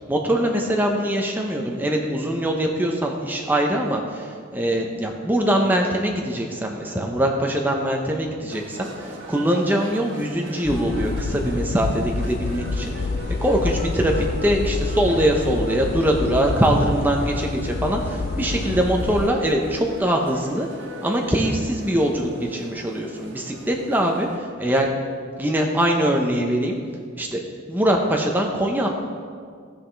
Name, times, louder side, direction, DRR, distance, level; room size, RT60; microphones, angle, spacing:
voice 1, 0.1-12.9 13.4-20.7 21.0-24.9 25.4-26.8 27.2-27.4 27.7-28.9, right 1 dB, 10° right, 1 dB, 0.7 m, -22 dB
sound 1, 8.5-24.4, equal, 75° right, 1.4 m, -40 dB
sound 2, 10.6-19.3, left 3 dB, 50° left, 0.4 m, -28 dB
16.5 x 5.7 x 3.3 m, 2.1 s
head